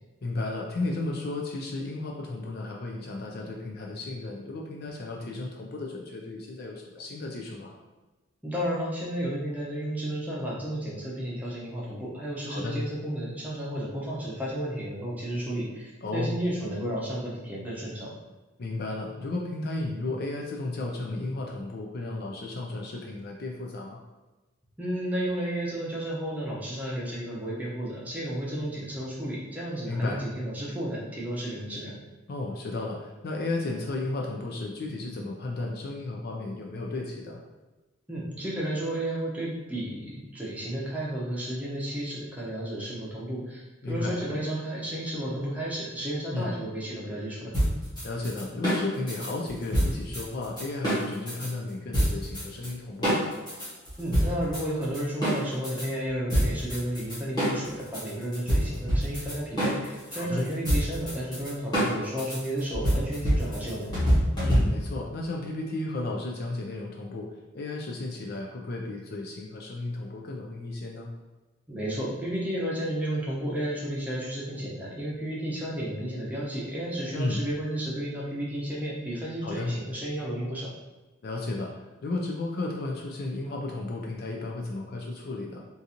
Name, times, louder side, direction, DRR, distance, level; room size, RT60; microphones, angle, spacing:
voice 1, 0.2-7.7 12.5-12.8 16.0-16.3 18.6-24.0 29.8-30.2 32.3-37.4 43.8-44.2 46.3-46.5 48.0-53.3 60.1-60.5 64.4-67.3 67.5-71.1 77.1-77.4 79.4-79.8 81.2-85.6, left 2 dB, 45° left, 0 dB, 0.3 m, -33 dB
voice 2, 8.4-18.1 24.8-31.9 38.1-47.5 54.0-64.1 71.7-80.7, right 1 dB, 5° right, -6 dB, 0.7 m, -32 dB
sound 1, 47.5-51.5 51.9-52.7 53.0-55.9 56.3-65.0, equal, 20° left, 1.3 m, -26 dB
3.8 x 2.5 x 2.8 m, 1.2 s
head